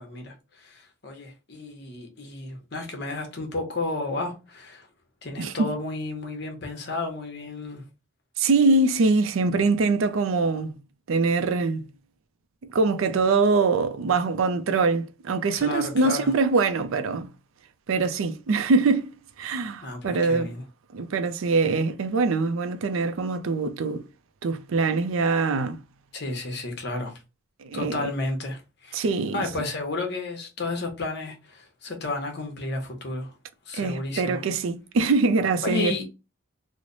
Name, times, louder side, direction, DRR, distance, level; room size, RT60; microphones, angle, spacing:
voice 1, 0.0-4.9 5.2-7.8 15.5-16.3 19.8-20.6 26.1-27.2 27.7-29.1 29.3-33.3 33.7-34.4 35.6-36.0, left 2 dB, 50° left, 0.9 m, -32 dB
voice 2, 5.4-5.7 8.4-10.7 11.1-11.9 12.7-17.3 17.9-20.5 20.9-24.1 24.4-25.8 27.6-28.1 28.9-29.4 33.7-36.0, right 3 dB, 70° right, 0.4 m, -23 dB
3.1 x 2.1 x 3.8 m
head